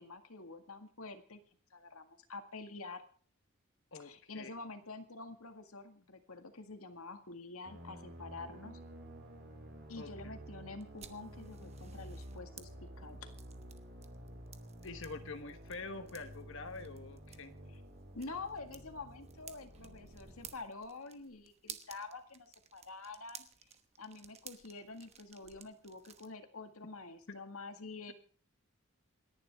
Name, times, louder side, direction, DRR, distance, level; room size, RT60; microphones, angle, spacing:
voice 1, 0.0-1.4 1.7-3.0 4.0-8.8 9.9-13.4 18.1-23.5 24.0-28.1, left 3 dB, 75° left, 7 dB, 1.9 m, -47 dB
voice 2, 3.9-4.5 10.0-10.4 14.8-17.5 27.3-27.4, left 3 dB, 60° left, 8 dB, 1.2 m, -46 dB
sound 1, 7.6-20.5, right 1 dB, 50° right, 5.0 m, -51 dB
sound 2, 10.8-26.3, right 8 dB, 30° right, 1.1 m, -56 dB
28.0 x 11.0 x 3.6 m, 0.43 s
head